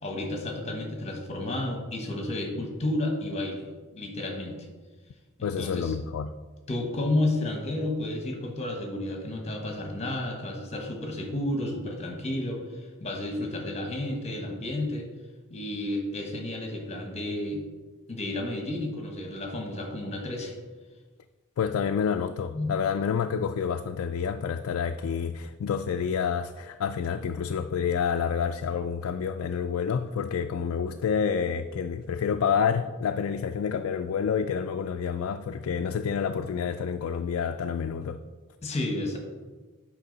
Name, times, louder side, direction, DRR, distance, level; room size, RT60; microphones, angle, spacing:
voice 1, 0.0-4.6 5.4-5.9 6.7-15.1 15.5-17.6 18.1-20.5 22.5-22.7 38.6-39.2, left 1 dB, 30° left, 2 dB, 1.2 m, -31 dB
voice 2, 5.4-6.3 21.6-38.2, left 7 dB, 70° left, 7 dB, 0.3 m, -28 dB
8.4 x 5.3 x 4.0 m, 1.3 s
head